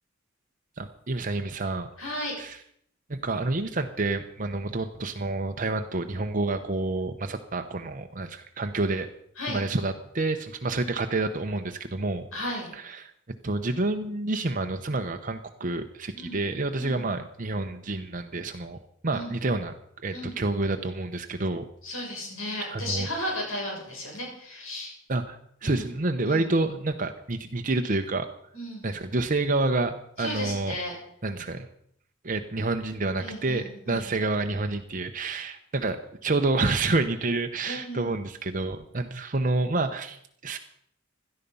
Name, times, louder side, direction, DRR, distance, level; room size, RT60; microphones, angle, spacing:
voice 1, 0.8-1.9 2.4-2.6 3.1-9.1 9.5-12.3 12.7-13.1 13.4-19.7 20.0-21.7 22.7-23.3 25.1-28.3 28.8-30.8 31.2-31.7 32.2-40.6, right 2 dB, 40° right, 6 dB, 0.9 m, -28 dB
voice 2, 2.0-2.3 9.4-9.6 12.3-12.7 16.1-16.4 16.8-17.1 19.1-19.4 20.1-20.3 21.8-24.9 25.6-25.9 26.2-26.5 28.5-28.9 30.2-30.9 33.2-34.1 37.6-38.1, left 1 dB, 85° left, -1 dB, 7.3 m, -34 dB
17.5 x 12.5 x 5.5 m, 0.68 s
head